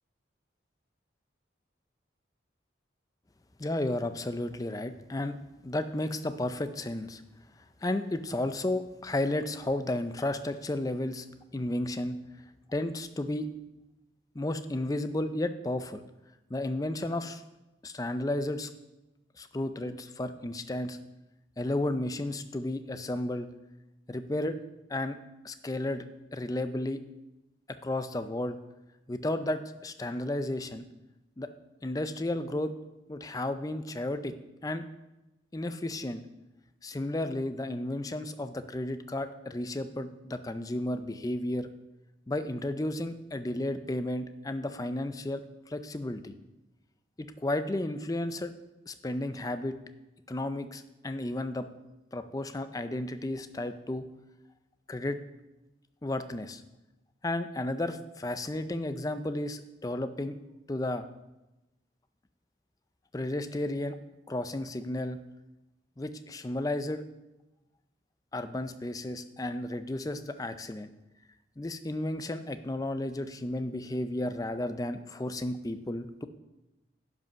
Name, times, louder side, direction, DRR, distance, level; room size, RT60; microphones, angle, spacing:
voice 1, 3.6-5.4 5.6-7.2 7.8-11.3 11.5-12.2 12.7-13.5 14.3-16.0 16.5-17.4 17.8-18.7 19.4-21.0 21.6-23.5 24.1-24.6 24.9-25.2 25.4-26.0 26.3-27.0 27.8-28.6 29.1-30.8 31.4-31.5 31.8-32.7 33.1-34.3 34.6-34.8 35.5-36.2 36.8-41.7 42.3-45.4 45.7-46.3 47.2-48.5 48.9-49.7 50.3-51.7 52.1-54.0 54.9-55.2 56.0-56.6 57.2-60.4 60.7-61.1 63.1-64.0 64.3-65.2 66.0-67.0 68.3-70.9 71.6-76.3, left 1 dB, 20° left, 10 dB, 0.4 m, -33 dB
11.0 x 5.3 x 5.5 m, 1.0 s
head